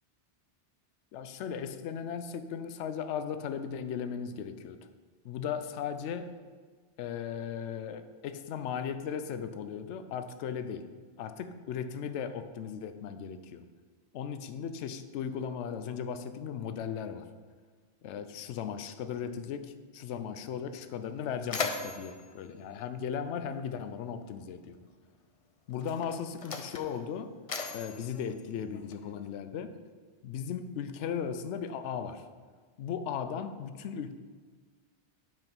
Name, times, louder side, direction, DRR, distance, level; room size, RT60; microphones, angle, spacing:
voice 1, 1.1-4.9 5.2-6.3 7.0-10.9 11.2-13.6 14.1-17.3 18.0-24.8 25.7-27.3 27.7-29.8 30.2-32.2 32.8-34.1, left 7 dB, 80° left, 10 dB, 0.9 m, -37 dB
Mechanisms, 20.5-20.6 21.0-23.7 24.7-24.9 25.7-29.3, left 4 dB, 40° left, 0.6 m, -40 dB
8.2 x 5.5 x 5.3 m, 1.5 s
omnidirectional pair, 1.2 m